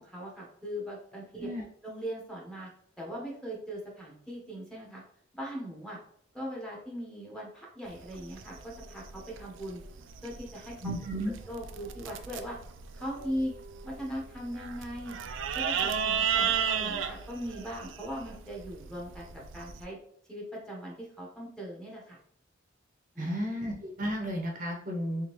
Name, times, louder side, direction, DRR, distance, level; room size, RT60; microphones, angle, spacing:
voice 1, 0.0-1.5 1.8-2.7 3.0-5.0 5.3-6.0 6.3-9.8 10.2-10.9 11.5-12.6 12.9-13.5 13.8-15.2 15.5-20.0 20.3-22.2 23.1-23.5, equal, 5° left, -4 dB, 0.9 m, -39 dB
sound 1, 7.9-19.8, right 7 dB, 75° right, 0.4 m, -34 dB
voice 2, 10.8-11.4 23.2-25.3, equal, 45° right, 1 dB, 0.8 m, -33 dB
3.6 x 3.4 x 3.0 m, 0.67 s
head